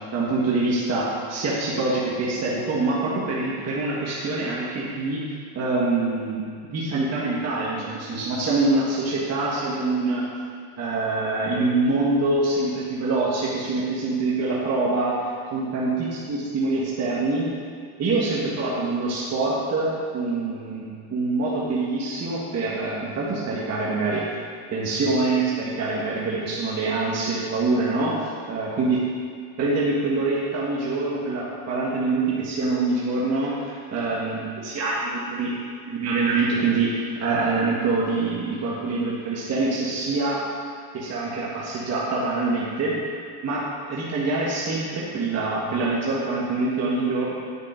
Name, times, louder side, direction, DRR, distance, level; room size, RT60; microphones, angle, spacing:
voice 1, 0.1-5.2 5.5-6.4 6.7-10.2 10.8-15.2 15.5-15.9 16.3-17.5 18.0-24.2 24.7-29.0 29.6-35.5 35.8-40.4 40.9-43.0 43.4-47.3, right 3 dB, 35° right, -6 dB, 1.7 m, -25 dB
9.7 x 5.7 x 5.2 m, 2.2 s
supercardioid pair, 120°, 47 cm